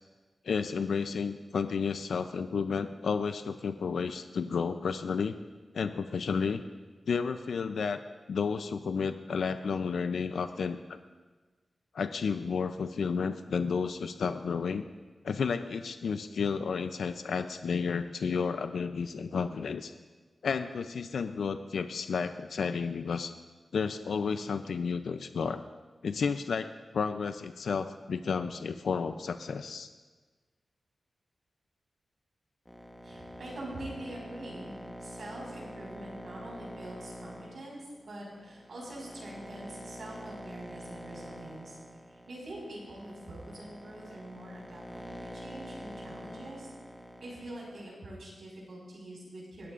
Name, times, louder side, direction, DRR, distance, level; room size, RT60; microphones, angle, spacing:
voice 1, 0.5-5.3 5.7-6.6 7.1-8.0 8.3-10.8 11.9-14.8 15.2-19.9 20.4-23.3 23.7-25.6 26.0-29.9, left 5 dB, 85° left, 9 dB, 0.4 m, -32 dB
sound 1, 32.6-47.8, equal, 10° left, 1.1 m, -46 dB
voice 2, 33.0-41.8 42.1-46.7 47.2-49.7, right 1 dB, 65° right, -3 dB, 4.9 m, -44 dB
20.0 x 13.5 x 2.5 m, 1.3 s
wide cardioid pair, 175°, 0 cm